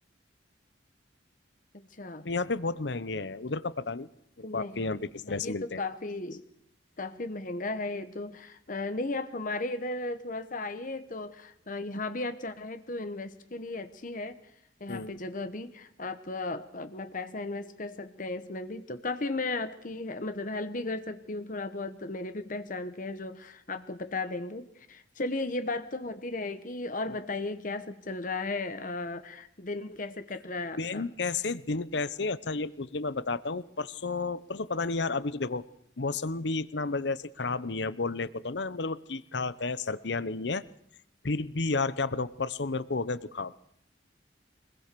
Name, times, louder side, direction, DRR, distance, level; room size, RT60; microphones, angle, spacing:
voice 1, 1.7-2.3 4.4-6.4 7.0-14.3 14.8-31.1, left 2 dB, 45° left, 10 dB, 1.1 m, -35 dB
voice 2, 2.2-4.1 4.4-5.8 14.9-15.1 30.8-35.6 36.0-40.6 41.2-43.5, left 3 dB, 65° left, 17 dB, 0.9 m, -32 dB
25.0 x 20.5 x 6.8 m, 0.71 s
head